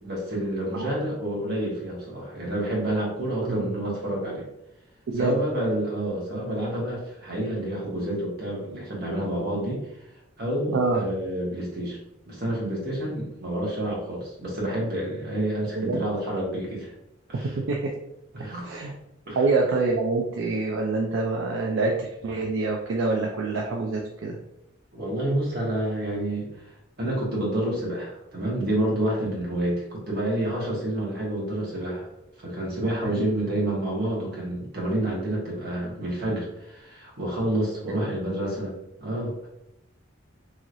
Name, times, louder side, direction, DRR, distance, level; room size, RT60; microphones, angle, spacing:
voice 1, 0.0-4.4 5.2-9.8 10.4-12.0 12.3-16.9 17.3-17.5 18.3-18.8 19.3-19.4 24.9-32.1 32.4-38.7 39.0-39.5, right 1 dB, 50° right, -4 dB, 1.2 m, -29 dB
voice 2, 17.4-17.9 18.6-18.9 19.4-24.4 33.0-33.3 38.0-38.1, right 3 dB, 70° right, 0 dB, 0.4 m, -26 dB
3.1 x 2.8 x 2.5 m, 0.83 s
head